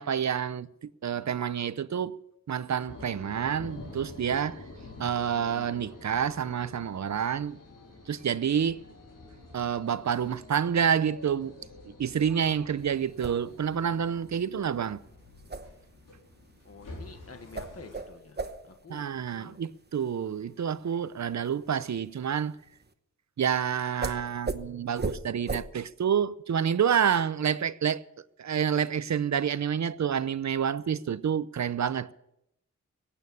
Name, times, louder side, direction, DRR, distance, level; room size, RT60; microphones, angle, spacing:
voice 1, 0.0-2.2 2.5-4.6 5.0-7.6 8.1-8.8 9.5-11.5 11.8-15.0 18.9-22.6 23.4-28.0 28.4-32.1, right 8 dB, 60° right, 0.6 m, -28 dB
sound 1, 2.9-18.0, left 2 dB, 85° left, 4.2 m, -48 dB
sound 2, 12.8-22.9 24.0-24.2 24.4-24.6 25.0-25.2 25.5-25.6, right 3 dB, 30° right, 1.0 m, -39 dB
voice 2, 16.6-19.0 19.3-19.6, left 4 dB, 50° left, 1.4 m, -49 dB
16.0 x 8.7 x 8.6 m
wide cardioid pair, 100°, 31 cm